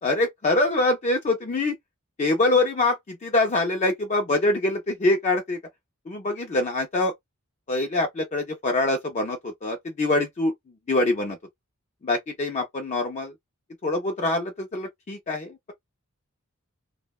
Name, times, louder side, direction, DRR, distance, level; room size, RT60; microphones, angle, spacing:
voice 1, 0.0-1.8 2.2-5.6 6.1-7.1 7.7-10.5 10.9-11.4 12.0-13.3 13.8-15.7, left 2 dB, 30° left, 0.4 m, -24 dB
2.7 x 2.1 x 2.3 m
head